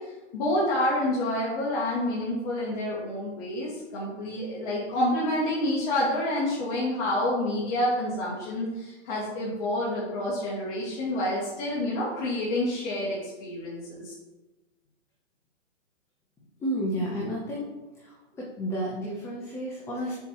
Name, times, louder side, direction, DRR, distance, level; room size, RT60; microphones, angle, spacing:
voice 1, 0.0-14.1, left 1 dB, 35° left, -8 dB, 1.9 m, -28 dB
voice 2, 16.6-17.7 18.0-20.2, equal, 5° left, -4 dB, 0.6 m, -31 dB
6.9 x 4.4 x 4.6 m, 1.1 s
hypercardioid pair, 145°, 37 cm